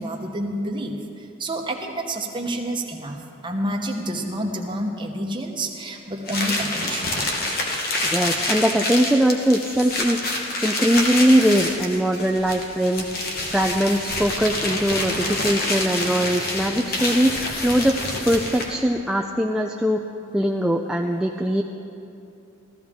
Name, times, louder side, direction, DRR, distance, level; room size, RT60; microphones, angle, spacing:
voice 1, 0.0-7.2, right 1 dB, 25° right, 2 dB, 1.0 m, -29 dB
sound 1, 6.2-18.8, left 2 dB, 50° left, 1.2 m, -27 dB
voice 2, 8.0-10.2 10.6-13.1 13.5-18.0 18.3-20.0 20.3-21.6, equal, 5° right, 1 dB, 0.3 m, -21 dB
15.0 x 13.5 x 3.6 m, 2.8 s
head